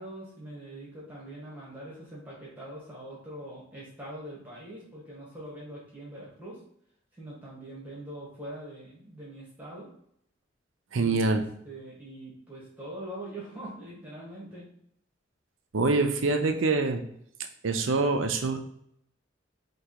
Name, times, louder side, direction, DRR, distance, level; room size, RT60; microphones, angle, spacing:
voice 1, 0.0-6.6 7.2-9.9 11.0-14.7, right 1 dB, 10° right, -6 dB, 1.4 m, -43 dB
voice 2, 10.9-11.4 15.7-17.0 17.6-18.6, right 3 dB, 90° right, 5 dB, 0.6 m, -25 dB
4.7 x 2.9 x 2.9 m, 0.70 s
head